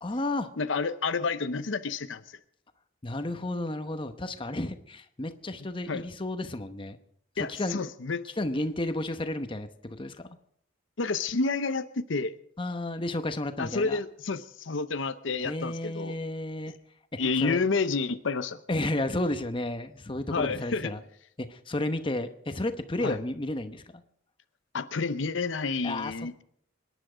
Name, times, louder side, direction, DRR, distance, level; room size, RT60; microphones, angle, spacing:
voice 1, 0.0-0.5 3.0-7.0 7.4-7.8 8.4-10.3 12.6-14.0 15.4-16.7 17.4-17.6 18.7-21.0 21.4-24.0 25.8-26.4, left 1 dB, 25° left, 8 dB, 0.9 m, -32 dB
voice 2, 0.6-2.2 5.9-6.0 7.4-8.2 11.0-12.4 13.6-16.1 17.2-18.6 20.3-20.9 23.0-23.2 24.7-26.4, left 4 dB, 75° left, 11 dB, 0.8 m, -29 dB
25.0 x 10.5 x 5.0 m, 0.68 s
head